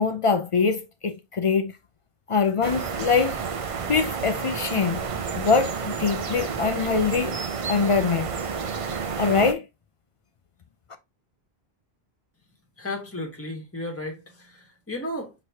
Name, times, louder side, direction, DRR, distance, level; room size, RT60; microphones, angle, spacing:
voice 1, 0.0-1.7 2.3-3.4 3.9-5.1 5.3-7.4 7.7-8.3 9.2-9.7, left 5 dB, 55° left, 0.3 m, -23 dB
sound 1, 2.6-9.5, right 5 dB, 45° right, 0.5 m, -30 dB
voice 2, 12.8-15.3, left 1 dB, 15° left, 1.3 m, -34 dB
6.0 x 3.1 x 2.8 m
omnidirectional pair, 1.1 m